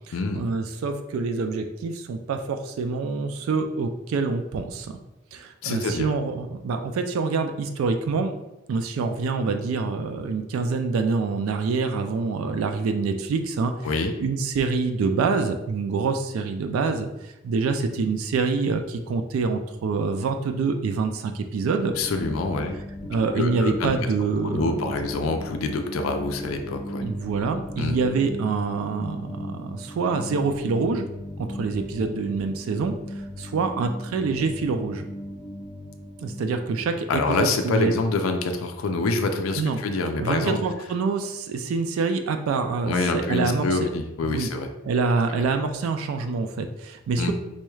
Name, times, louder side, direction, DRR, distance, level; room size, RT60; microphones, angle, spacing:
voice 1, 0.1-5.0 5.3-8.3 8.7-13.7 14.2-22.0 23.1-24.9 27.0-31.1 31.4-32.9 33.4-35.1 36.2-37.9 39.6-39.8 40.2-43.8 44.2-44.5 44.8-47.3, right 4 dB, 90° right, 6 dB, 0.3 m, -26 dB
voice 2, 5.6-6.1 13.8-14.1 22.0-22.8 23.0-23.1 23.4-24.1 24.4-27.0 27.8-28.0 37.1-40.6 42.8-44.7 45.3-45.4 47.2-47.3, left 3 dB, 85° left, 6 dB, 0.4 m, -26 dB
sound 1, 21.9-36.7, equal, 15° left, 0.6 m, -37 dB
4.2 x 2.3 x 3.1 m, 0.97 s
head